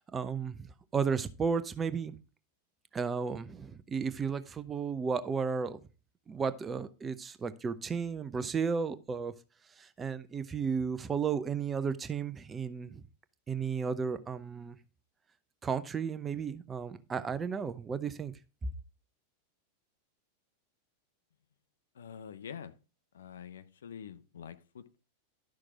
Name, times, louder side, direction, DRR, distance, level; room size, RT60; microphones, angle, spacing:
voice 1, 0.1-0.7 0.9-2.2 2.9-5.8 6.3-9.3 9.8-13.0 13.5-14.8 15.6-18.3, right 6 dB, 20° right, 0.7 m, -33 dB
voice 2, 21.9-22.7 23.1-25.0, left 8 dB, 65° left, 0.8 m, -46 dB
12.0 x 6.3 x 3.6 m
figure-of-eight pair, 90°, 0 cm